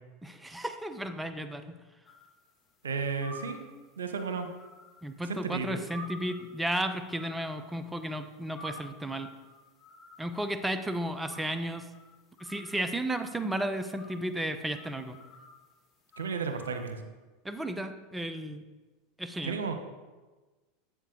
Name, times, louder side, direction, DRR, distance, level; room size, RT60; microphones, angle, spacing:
voice 1, 0.2-1.8 5.0-9.3 10.2-11.9 12.4-15.2 17.4-18.6 19.2-19.6, right 1 dB, 10° right, 9 dB, 0.9 m, -34 dB
sound 1, 2.1-16.9, equal, 30° left, 2.4 m, -51 dB
voice 2, 2.8-3.7 4.0-4.5 5.3-5.8 16.2-17.0 19.5-19.8, right 5 dB, 85° right, 7 dB, 1.0 m, -33 dB
12.5 x 8.1 x 3.9 m, 1.3 s
hypercardioid pair, 90°, 0 cm